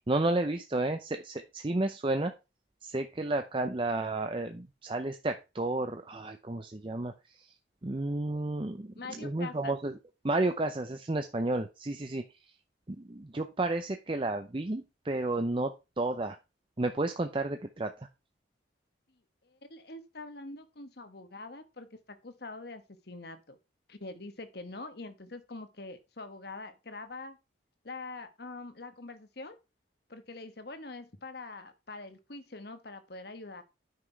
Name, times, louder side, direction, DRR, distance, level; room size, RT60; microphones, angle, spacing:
voice 1, 0.1-2.3 2.8-7.1 7.4-7.5 7.8-8.9 9.2-9.9 10.2-12.2 13.0-16.4 16.8-17.9, right 2 dB, 25° right, 7 dB, 0.6 m, -31 dB
voice 2, 8.9-9.8 19.4-23.6 23.9-27.4 27.8-29.6 30.1-33.6, left 3 dB, 55° left, 10 dB, 1.3 m, -44 dB
9.6 x 6.0 x 4.5 m, 0.27 s
head